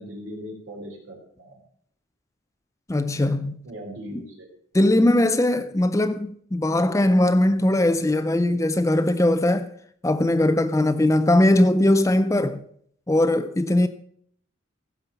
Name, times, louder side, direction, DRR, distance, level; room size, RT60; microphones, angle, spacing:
voice 1, 0.0-1.6 3.6-4.5, equal, 75° right, 4.2 m, -39 dB
voice 2, 2.9-3.6 4.1-4.2 4.7-9.7 10.0-12.6 13.1-13.9, left 1 dB, 15° left, 0.4 m, -20 dB
15.5 x 5.5 x 7.0 m
head